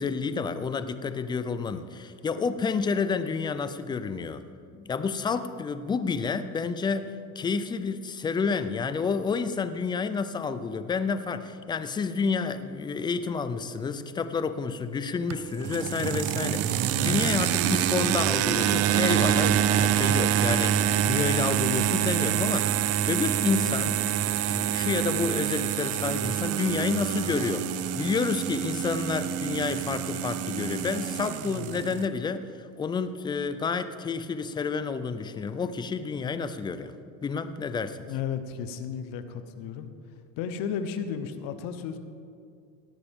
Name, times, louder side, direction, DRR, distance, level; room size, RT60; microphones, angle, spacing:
voice 1, 0.0-4.4 4.7-24.0 24.4-37.0 37.2-38.1, left 5 dB, 15° left, 11 dB, 0.3 m, -30 dB
sound 1, 15.3-32.1, right 11 dB, 40° right, 0.5 m, -26 dB
voice 2, 38.1-39.9 40.4-42.0, left 7 dB, 60° left, 9 dB, 1.0 m, -33 dB
18.0 x 11.5 x 3.6 m, 2.3 s
cardioid pair, 145°, 38 cm